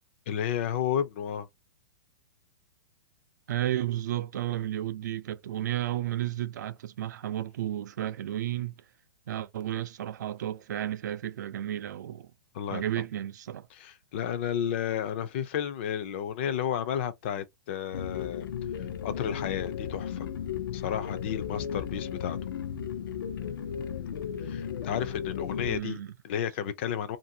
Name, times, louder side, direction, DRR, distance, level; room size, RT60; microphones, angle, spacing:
voice 1, 0.3-1.5 12.5-12.8 13.7-18.5 19.0-20.3 20.7-22.4 24.4-27.2, left 9 dB, 35° left, 0.4 m, -32 dB
voice 2, 3.5-8.7 9.3-12.3 12.7-13.7 25.7-26.1, right 12 dB, 60° right, 0.4 m, -32 dB
sound 1, 17.9-25.8, left 8 dB, 90° left, 0.5 m, -35 dB
2.6 x 2.6 x 2.7 m
hypercardioid pair, 170°, 11 cm